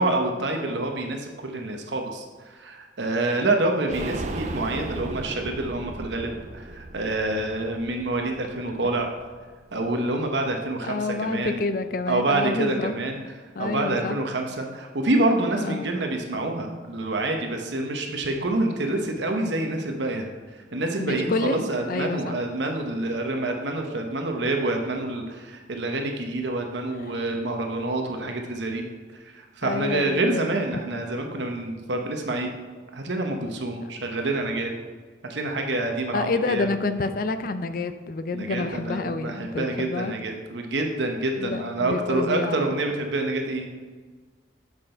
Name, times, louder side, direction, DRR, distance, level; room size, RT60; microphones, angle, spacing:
voice 1, 0.0-9.1 9.7-11.6 12.1-28.9 29.1-32.5 32.9-34.7 35.3-36.7 38.3-43.7, right 2 dB, 75° right, 3 dB, 0.9 m, -27 dB
sound 1, 3.9-9.5 9.8-9.9 10.2-10.3, right 2 dB, 40° right, 0.5 m, -36 dB
voice 2, 10.9-12.9 13.6-14.2 15.6-15.9 21.0-22.4 29.6-30.5 36.1-40.2 41.4-42.8, left 3 dB, 50° left, 10 dB, 0.4 m, -28 dB
7.8 x 6.1 x 4.4 m, 1.4 s
head